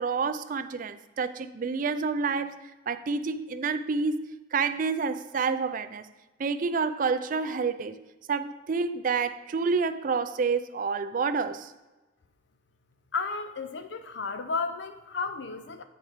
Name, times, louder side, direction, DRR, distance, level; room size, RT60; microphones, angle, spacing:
voice 1, 0.0-2.6 2.9-6.1 6.4-8.0 8.3-11.7, right 5 dB, 45° right, 0.4 m, -28 dB
voice 2, 13.1-15.8, left 4 dB, 75° left, 0.6 m, -33 dB
8.7 x 4.5 x 4.8 m
head